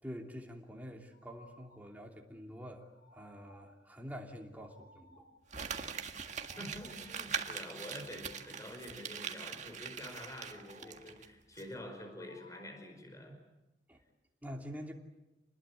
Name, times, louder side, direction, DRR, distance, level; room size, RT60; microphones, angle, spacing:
voice 1, 0.0-5.2 13.9-14.0 14.4-14.9, equal, 10° right, 1 dB, 2.9 m, -46 dB
sound 1, 1.1-1.9 2.9-3.8 4.6-5.5 6.3-7.2 8.1-8.8 10.4-11.1 12.1-12.9, left 2 dB, 55° left, 5.6 m, -62 dB
Crumpling crinkling, 5.5-11.3 11.6-11.7, right 6 dB, 40° right, 1.7 m, -42 dB
voice 2, 6.6-13.4, left 1 dB, 20° left, 5 dB, 5.1 m, -47 dB
28.0 x 20.5 x 8.4 m, 1.0 s
head